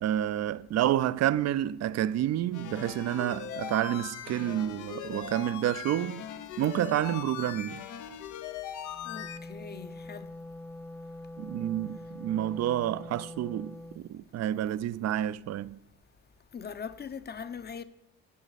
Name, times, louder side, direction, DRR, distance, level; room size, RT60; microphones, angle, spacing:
voice 1, 0.0-6.3 6.6-7.8 11.4-15.8, right 12 dB, 60° right, 0.4 m, -29 dB
sound 1, 2.5-9.4, left 10 dB, 80° left, 0.7 m, -40 dB
Wind instrument woodwind instrument, 8.9-14.0, left 1 dB, 5° left, 0.3 m, -44 dB
voice 2, 9.1-10.3 16.5-17.8, left 6 dB, 35° left, 0.7 m, -41 dB
15.5 x 6.1 x 4.1 m
cardioid pair, 90°, 30 cm